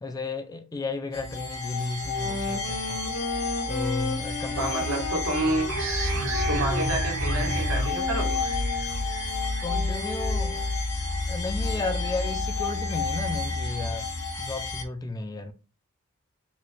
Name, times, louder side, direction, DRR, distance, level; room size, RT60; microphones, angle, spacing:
voice 1, 0.0-3.1 3.7-5.1 9.6-10.7 11.3-14.1 14.4-15.5, left 3 dB, 15° left, 0.3 m, -33 dB
sound 1, 1.1-14.8, left 3 dB, 70° left, 0.8 m, -30 dB
Wind instrument woodwind instrument, 2.0-10.7, left 2 dB, 90° left, 1.3 m, -36 dB
voice 2, 4.6-5.7 6.5-8.4, right 2 dB, 90° right, 1.3 m, -29 dB
sound 2, 5.7-11.0, right 3 dB, 65° right, 0.8 m, -33 dB
4.1 x 2.2 x 3.1 m
head